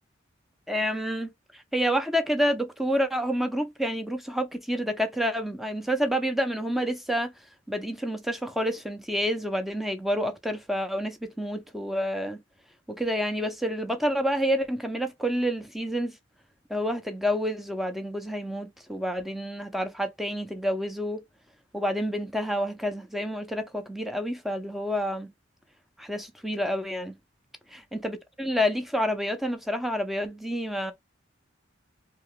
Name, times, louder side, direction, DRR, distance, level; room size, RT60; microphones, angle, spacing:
voice 1, 0.7-7.3 7.7-12.4 12.9-16.2 16.7-21.2 21.7-25.3 26.0-27.2 27.7-30.9, equal, ahead, 0.4 m, -29 dB
2.8 x 2.8 x 3.0 m
head